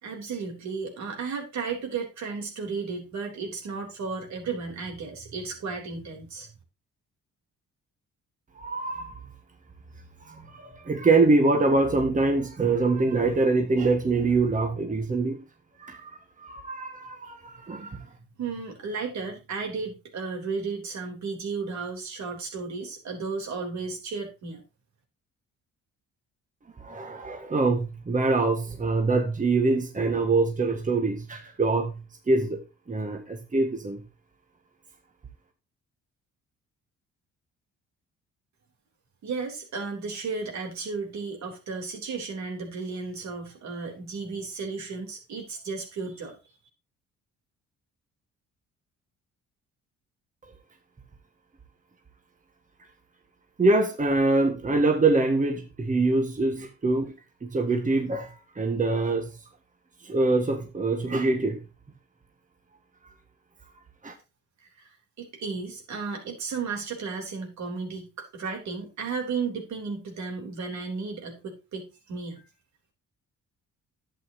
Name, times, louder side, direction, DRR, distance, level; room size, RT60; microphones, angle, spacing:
voice 1, 0.0-6.5 17.9-18.1 18.4-24.6 39.2-46.4 64.8-72.4, right 4 dB, 65° right, 3.6 m, -34 dB
voice 2, 8.6-9.2 10.3-15.4 15.8-18.0 26.8-32.6 32.9-34.0 53.6-57.1 57.4-59.3 60.0-61.6 64.0-64.1, right 3 dB, 25° right, 1.7 m, -24 dB
11.0 x 8.3 x 2.9 m
cardioid pair, 90°, 30 cm